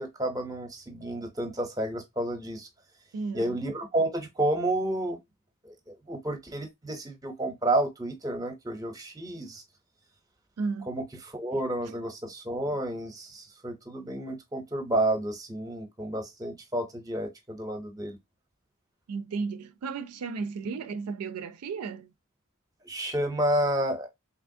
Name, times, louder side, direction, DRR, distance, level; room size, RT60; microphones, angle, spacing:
voice 1, 0.0-2.7 3.3-5.2 5.6-9.6 10.9-18.2 22.8-24.1, right 1 dB, 15° right, 0.6 m, -30 dB
voice 2, 3.1-3.6 10.6-10.9 11.9-12.0 19.1-22.1, right 4 dB, 85° right, 0.4 m, -34 dB
3.4 x 2.8 x 2.6 m
head